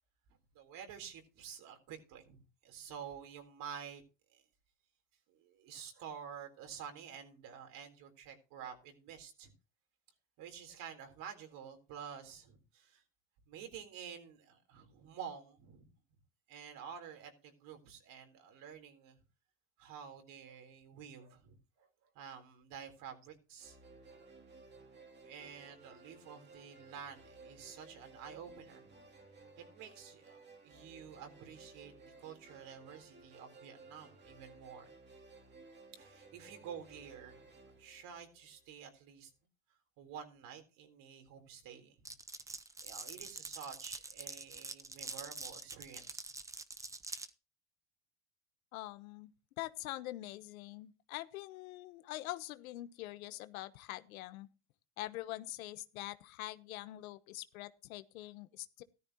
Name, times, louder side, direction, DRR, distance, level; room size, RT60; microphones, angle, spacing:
voice 1, 0.5-4.0 4.3-4.4 5.3-9.5 10.4-13.0 13.5-15.9 16.5-19.2 19.8-21.9 22.1-23.8 24.2-24.3 24.9-29.0 29.6-34.9 35.9-37.5 37.8-39.3 40.0-42.0 42.8-46.3, right 7 dB, 50° right, 4.0 m, -50 dB
sound 1, 23.6-38.8, right 3 dB, 25° right, 2.8 m, -58 dB
Glass, 42.0-47.3, right 3 dB, 10° right, 0.7 m, -45 dB
voice 2, 48.7-49.3 49.6-54.5 55.0-58.8, left 16 dB, 85° left, 1.2 m, -44 dB
14.0 x 13.5 x 3.0 m
supercardioid pair, 130°, 41 cm